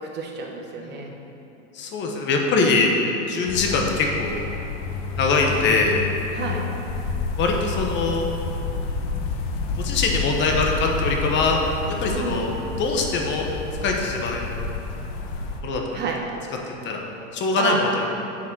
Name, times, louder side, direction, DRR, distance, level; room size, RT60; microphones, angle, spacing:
voice 1, 0.0-1.1 6.3-6.6 12.1-12.4 15.9-16.2 17.6-17.8, right 5 dB, 30° right, 1 dB, 1.2 m, -29 dB
voice 2, 0.8-1.1 1.7-2.9 3.3-4.4 5.2-6.0 7.4-8.3 9.8-11.6 11.9-12.5 12.8-13.5 13.8-14.4 15.6-16.0 16.8-17.0 17.3-18.1, left 3 dB, 30° left, 1 dB, 1.2 m, -23 dB
sound 1, 3.5-15.6, left 4 dB, 55° left, 1.2 m, -29 dB
7.2 x 6.5 x 7.5 m, 2.9 s
supercardioid pair, 130°, 36 cm